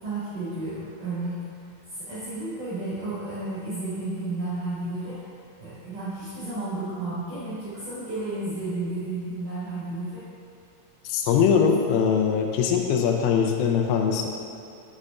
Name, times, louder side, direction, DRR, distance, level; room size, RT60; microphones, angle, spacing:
voice 1, 0.0-1.5 1.9-5.2 5.6-10.3, right 2 dB, 55° right, -12 dB, 2.4 m, -32 dB
voice 2, 11.1-14.3, left 7 dB, 85° left, 3 dB, 3.1 m, -22 dB
9.7 x 6.4 x 2.5 m, 2.6 s
omnidirectional pair, 5.8 m